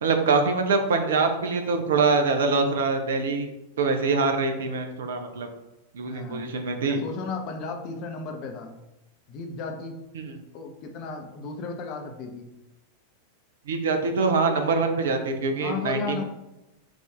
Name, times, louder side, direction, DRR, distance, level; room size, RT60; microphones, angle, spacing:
voice 1, 0.0-3.5 3.8-5.5 5.9-7.0 10.1-10.2 13.7-16.2, right 4 dB, 60° right, 5 dB, 0.6 m, -24 dB
voice 2, 6.1-6.5 6.8-8.8 9.3-10.0 10.5-12.5 15.6-16.2, left 4 dB, 40° left, 3 dB, 0.7 m, -34 dB
4.9 x 2.6 x 3.5 m, 0.94 s
figure-of-eight pair, 90°, 0 cm